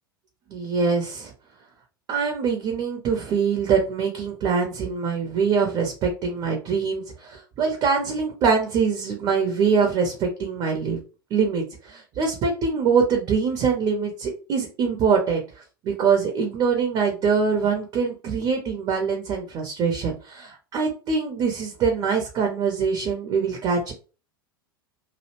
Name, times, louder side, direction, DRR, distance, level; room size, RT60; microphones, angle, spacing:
voice 1, 0.5-1.3 2.1-11.0 11.3-15.4 15.8-23.9, right 5 dB, 35° right, 3 dB, 0.7 m, -24 dB
2.6 x 2.0 x 3.0 m, 0.34 s
figure-of-eight pair, 85°, 12 cm